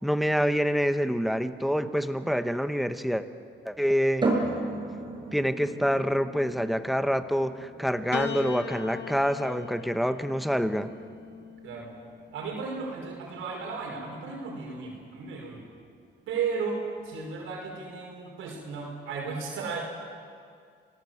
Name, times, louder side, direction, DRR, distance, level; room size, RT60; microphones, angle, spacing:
voice 1, 0.0-3.2 3.6-4.3 5.3-10.9, equal, ahead, 10 dB, 1.3 m, -26 dB
sound 1, 4.2-17.7, right 2 dB, 25° right, 5.9 m, -37 dB
Piano, 8.1-12.6 13.6-14.4, left 7 dB, 60° left, 2.2 m, -40 dB
voice 2, 12.3-15.7 16.3-19.8, right 5 dB, 80° right, -1 dB, 5.2 m, -34 dB
26.5 x 18.5 x 8.1 m, 2.2 s
cardioid pair, 90°, 20 cm